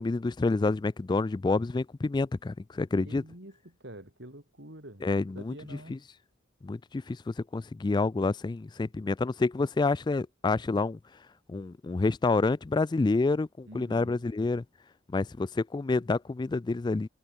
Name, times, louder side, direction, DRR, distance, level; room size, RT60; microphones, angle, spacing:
voice 1, 0.0-3.2 5.0-5.5 5.9-6.0 6.6-11.0 11.5-14.6 15.1-17.1, left 3 dB, 20° left, 0.3 m, -28 dB
voice 2, 3.1-5.1 5.3-6.0 13.7-14.2, right 1 dB, 60° right, 5.8 m, -47 dB
head